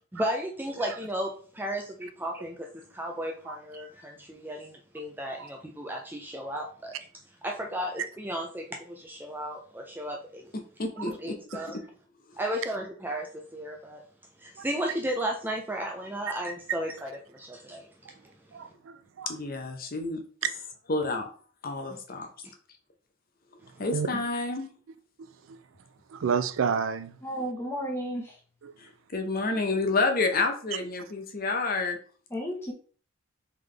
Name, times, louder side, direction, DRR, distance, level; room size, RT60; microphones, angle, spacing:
voice 1, 0.1-7.0 7.4-10.5 11.0-11.8 12.4-14.0 14.4-17.9 21.9-22.0, equal, 10° right, 0.4 m, -34 dB
voice 2, 10.8-11.3 19.3-20.2 20.9-21.3 21.6-22.3 23.8-24.7 29.1-32.0, left 3 dB, 50° left, 0.8 m, -29 dB
voice 3, 18.5-19.3 23.9-24.1 25.5-25.6 26.1-27.1, right 6 dB, 75° right, 0.4 m, -29 dB
voice 4, 27.2-28.4 32.3-32.7, equal, 10° left, 1.1 m, -33 dB
3.8 x 3.4 x 3.3 m
head